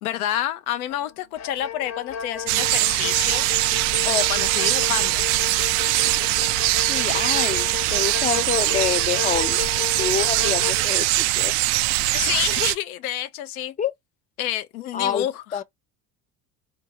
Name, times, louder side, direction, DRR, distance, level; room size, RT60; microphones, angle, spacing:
voice 1, 0.0-3.5 4.0-5.3 12.1-13.7 14.4-15.6, left 12 dB, 75° left, 0.8 m, -28 dB
sound 1, 0.9-1.1 1.4-10.7, left 11 dB, 40° left, 0.9 m, -34 dB
sound 2, 2.5-12.8, right 18 dB, 60° right, 0.5 m, -22 dB
voice 2, 6.9-9.6 10.0-11.5 13.8-13.9 14.9-15.3 15.5-15.6, left 7 dB, 20° left, 0.5 m, -27 dB
4.5 x 2.8 x 2.9 m
hypercardioid pair, 75°, 44 cm